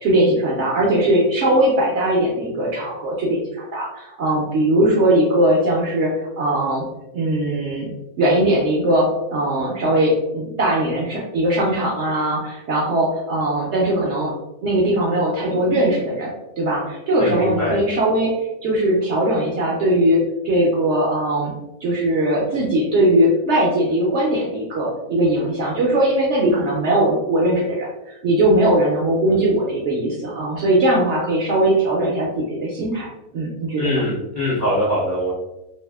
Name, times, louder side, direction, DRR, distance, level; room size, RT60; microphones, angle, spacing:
voice 1, 0.0-6.1 6.4-6.8 7.1-7.9 8.2-14.3 14.6-20.2 20.4-21.5 21.8-33.1 33.3-34.0, right 1 dB, 70° right, -3 dB, 0.7 m, -20 dB
voice 2, 17.2-17.8 33.8-35.3, left 1 dB, 70° left, -6 dB, 0.4 m, -22 dB
2.6 x 2.3 x 2.2 m, 0.95 s
omnidirectional pair, 1.6 m